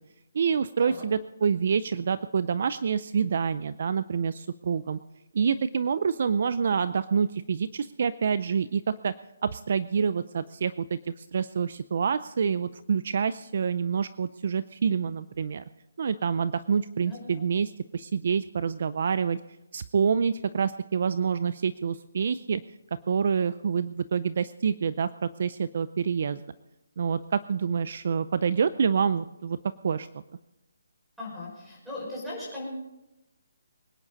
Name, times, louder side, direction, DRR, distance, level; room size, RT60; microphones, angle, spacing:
voice 1, 0.3-5.0 5.3-9.1 9.4-15.6 16.0-19.4 19.7-22.6 23.1-26.4 27.0-29.6 29.8-30.1, right 6 dB, 45° right, 15 dB, 0.5 m, -27 dB
voice 2, 31.2-32.7, left 2 dB, ahead, -7 dB, 5.5 m, -38 dB
24.5 x 9.9 x 4.0 m, 0.95 s
hypercardioid pair, 175°, 0 cm